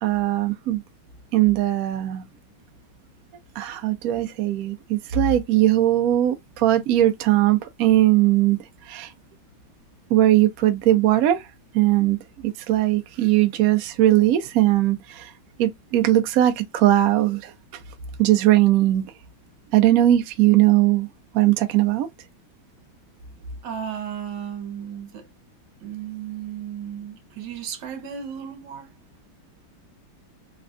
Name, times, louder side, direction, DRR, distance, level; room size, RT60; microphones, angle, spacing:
voice 1, 0.0-0.8 1.3-2.3 3.6-9.1 10.1-11.4 11.7-15.3 15.6-17.8 18.2-19.1 19.7-21.1 21.3-22.1, right 14 dB, 85° right, 0.7 m, -19 dB
voice 2, 23.6-25.3 25.8-28.9, right 8 dB, 65° right, 1.3 m, -34 dB
3.3 x 2.2 x 2.4 m
omnidirectional pair, 2.2 m